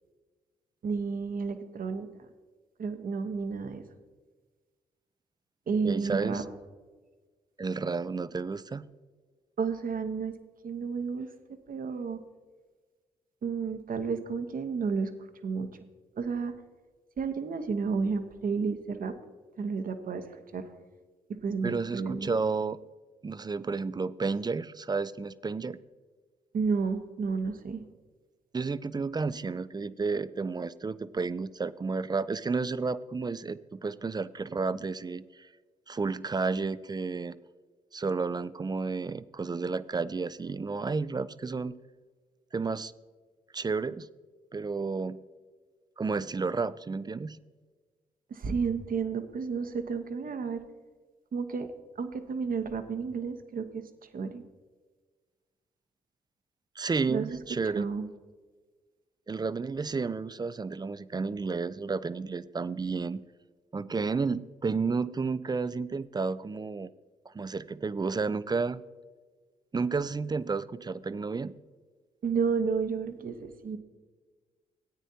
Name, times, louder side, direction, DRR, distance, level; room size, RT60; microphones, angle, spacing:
voice 1, 0.8-2.1 2.8-3.8 5.7-6.4 9.6-10.4 10.6-11.3 11.7-12.2 13.4-15.1 15.4-15.7 16.2-16.5 17.2-19.1 19.6-20.7 21.4-22.3 26.5-27.8 48.3-50.6 51.3-51.7 52.0-53.8 54.1-54.4 57.1-57.4 57.7-58.1 72.2-73.8, right 5 dB, 55° right, 9 dB, 1.0 m, -31 dB
voice 2, 5.8-6.4 7.6-8.9 21.6-22.8 23.2-25.8 28.5-35.5 35.9-37.4 37.9-41.7 42.5-42.9 43.5-44.1 44.5-45.2 46.0-47.4 56.8-57.9 59.3-63.2 63.7-66.9 67.3-68.8 69.7-71.5, right 4 dB, 25° right, 17 dB, 0.4 m, -31 dB
14.0 x 9.2 x 2.8 m, 1.4 s
hypercardioid pair, 40°, 18 cm